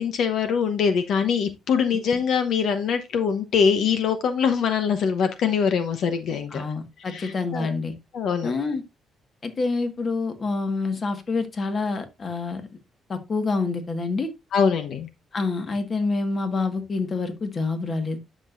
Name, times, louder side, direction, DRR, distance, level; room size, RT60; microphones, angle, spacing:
voice 1, 0.0-6.6 7.1-7.7 8.1-8.5 14.5-15.1, left 6 dB, 70° left, 0.9 m, -23 dB
voice 2, 6.5-7.9 8.4-8.8 9.4-12.6 13.1-14.3 15.3-18.2, left 3 dB, 40° left, 1.6 m, -27 dB
9.9 x 6.1 x 2.6 m
cardioid pair, 90°, 0 cm